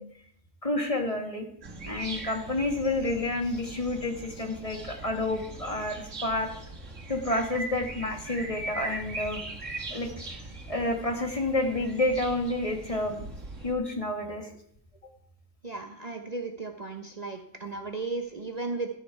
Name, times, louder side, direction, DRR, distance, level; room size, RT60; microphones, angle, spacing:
voice 1, 0.6-1.4 1.8-6.5 7.1-9.4 9.9-10.1 10.7-13.3 13.6-14.5, left 2 dB, 30° left, 3 dB, 1.7 m, -29 dB
sound 1, 1.6-13.7, right 2 dB, 85° right, 2.2 m, -40 dB
voice 2, 15.6-18.9, right 3 dB, 35° right, 4 dB, 1.0 m, -35 dB
12.5 x 9.8 x 4.6 m, 0.67 s
omnidirectional pair, 1.2 m